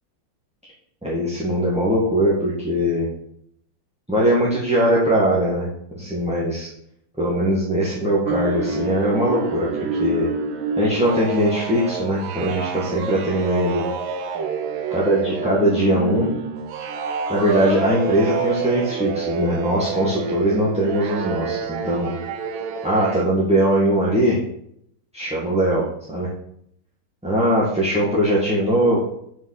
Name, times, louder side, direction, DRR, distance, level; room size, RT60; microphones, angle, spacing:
voice 1, 1.0-3.1 4.1-5.7 5.9-6.7 7.2-10.3 10.8-13.9 14.9-16.3 17.3-22.1 22.8-24.4 25.1-26.3 27.2-29.0, right 1 dB, 5° right, -7 dB, 1.6 m, -21 dB
sound 1, 8.2-23.2, right 4 dB, 70° right, 1.6 m, -28 dB
7.8 x 5.5 x 6.6 m, 0.72 s
omnidirectional pair, 2.3 m